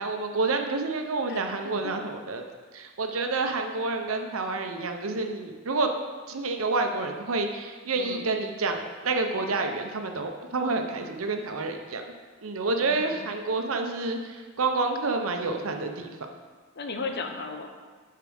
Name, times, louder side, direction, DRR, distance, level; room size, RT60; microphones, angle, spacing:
voice 1, 0.0-2.4 2.7-5.9 6.3-12.1 12.4-16.1, right 3 dB, 80° right, 5 dB, 0.8 m, -29 dB
voice 2, 1.3-2.0 7.9-8.3 12.8-13.3 16.8-17.7, left 3 dB, 50° left, 4 dB, 0.8 m, -36 dB
6.9 x 4.7 x 6.3 m, 1.5 s
head